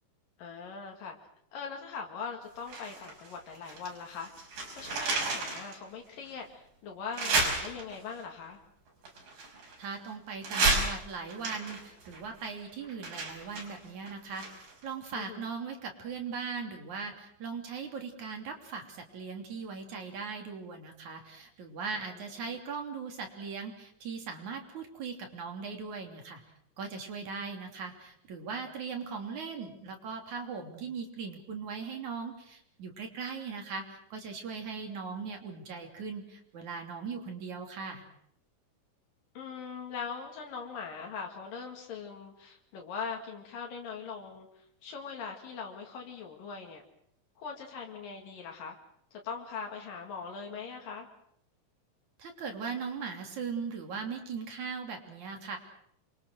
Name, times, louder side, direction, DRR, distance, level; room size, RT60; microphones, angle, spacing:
voice 1, 0.4-1.2 1.5-4.3 4.7-8.6 15.2-15.5 22.5-22.6 39.4-44.5 44.8-46.8 47.4-48.8 49.1-51.1, left 5 dB, 80° left, 1 dB, 3.9 m, -41 dB
sound 1, 2.7-3.9 4.2-5.8 6.2-6.3 7.1-8.1 9.0-10.0 10.4-14.8 15.1-15.2, right 3 dB, 85° right, 6.8 m, -32 dB
voice 2, 9.8-26.4 26.8-38.0 52.2-55.6, right 5 dB, 60° right, 3 dB, 4.4 m, -39 dB
28.0 x 23.0 x 6.4 m, 0.70 s
omnidirectional pair, 3.9 m